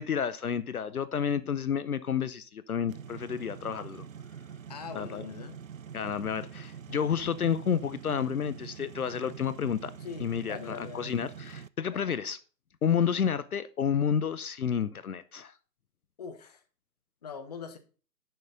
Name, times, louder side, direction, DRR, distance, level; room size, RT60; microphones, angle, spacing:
voice 1, 0.0-4.1 5.0-5.2 5.9-9.9 10.2-12.4 12.8-15.5, left 7 dB, 60° left, 0.7 m, -30 dB
sound 1, 2.9-11.7, right 8 dB, 55° right, 0.5 m, -45 dB
voice 2, 4.7-5.6 10.0-11.2 11.9-12.1 16.2-16.6 17.2-17.8, left 6 dB, 25° left, 0.8 m, -42 dB
10.5 x 6.7 x 3.9 m
figure-of-eight pair, 145°, 50 cm